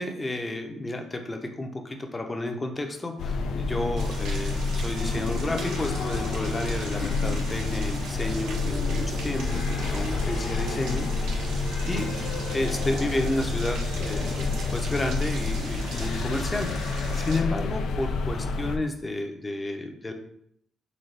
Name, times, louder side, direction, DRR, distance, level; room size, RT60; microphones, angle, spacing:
voice 1, 0.0-20.1, left 2 dB, 20° left, 4 dB, 0.7 m, -31 dB
sound 1, 3.2-18.8, left 3 dB, 75° left, 0.4 m, -29 dB
Rain, 4.0-17.4, right 3 dB, 90° right, 0.9 m, -40 dB
Telephone, 8.2-14.2, right 3 dB, 40° right, 0.5 m, -44 dB
4.0 x 3.7 x 3.3 m, 0.72 s
cardioid pair, 90°, 0 cm